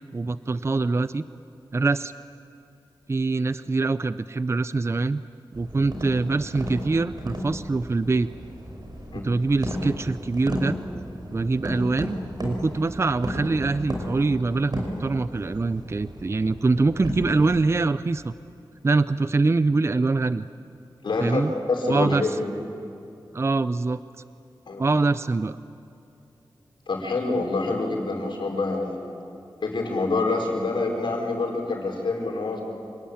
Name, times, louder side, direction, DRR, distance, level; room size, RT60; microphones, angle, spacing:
voice 1, 0.1-1.2 1.7-2.1 3.1-5.2 5.5-8.3 9.2-10.8 11.3-18.3 18.8-20.4 21.2-21.5 21.9-22.3 23.3-24.0 24.8-25.6, right 3 dB, 35° right, 14 dB, 0.5 m, -24 dB
sound 1, 5.5-17.6, equal, 60° right, 5.4 m, -34 dB
voice 2, 21.0-22.5 24.7-24.9 26.9-29.0 29.6-32.6, left 3 dB, 85° left, 0 dB, 5.0 m, -26 dB
27.5 x 20.0 x 8.8 m, 2.7 s
wide cardioid pair, 80°, 8 cm